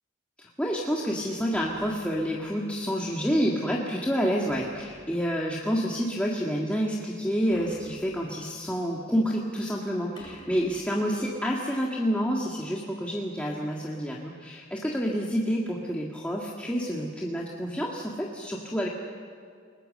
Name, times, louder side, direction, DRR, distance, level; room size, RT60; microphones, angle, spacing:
voice 1, 0.4-18.9, equal, 5° left, -3 dB, 1.9 m, -28 dB
sound 1, 1.5-2.6 4.5-5.5 7.5-8.6 10.2-11.2, left 1 dB, 25° left, 4.6 m, -51 dB
30.0 x 20.0 x 6.7 m, 2.2 s
head